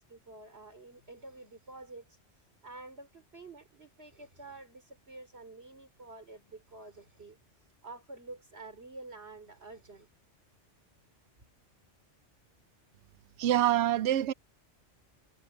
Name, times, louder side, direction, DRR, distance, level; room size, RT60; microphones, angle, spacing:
voice 1, 0.0-2.2 2.6-7.4 7.8-10.1, right 2 dB, 60° right, 3.9 m, -49 dB
voice 2, 13.4-14.3, right 12 dB, 75° right, 0.9 m, -25 dB
omnidirectional pair, 1.2 m